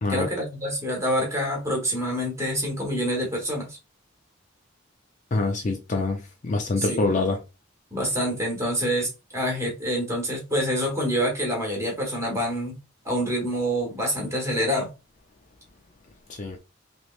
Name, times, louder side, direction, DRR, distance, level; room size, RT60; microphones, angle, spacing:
voice 1, 0.1-3.8 6.7-7.0 7.9-12.8 13.0-14.9, equal, 15° right, 1.3 m, -26 dB
voice 2, 5.3-7.4 16.3-16.6, left 3 dB, 35° left, 0.4 m, -25 dB
3.1 x 3.0 x 2.4 m
head